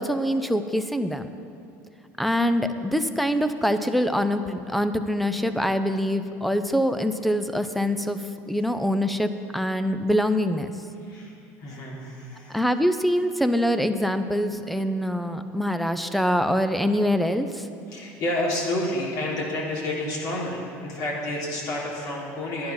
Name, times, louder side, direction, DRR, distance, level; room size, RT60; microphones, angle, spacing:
voice 1, 0.0-1.3 2.2-8.2 8.5-10.7 12.5-17.7, equal, ahead, 10 dB, 0.6 m, -24 dB
voice 2, 11.0-12.6 17.9-22.7, left 1 dB, 55° left, -4 dB, 3.4 m, -30 dB
10.5 x 10.0 x 5.8 m, 2.5 s
supercardioid pair, 110°, 7 cm